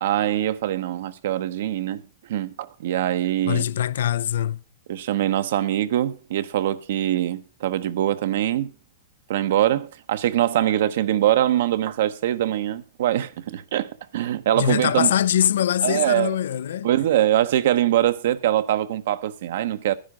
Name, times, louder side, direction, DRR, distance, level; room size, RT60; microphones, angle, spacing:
voice 1, 0.0-2.0 2.3-3.6 4.9-8.7 9.3-15.1 15.8-16.3 16.8-19.9, right 12 dB, 65° right, 0.9 m, -23 dB
voice 2, 3.4-4.6 14.6-16.9, left 10 dB, 80° left, 0.5 m, -23 dB
11.5 x 10.0 x 5.0 m
supercardioid pair, 160°, 0 cm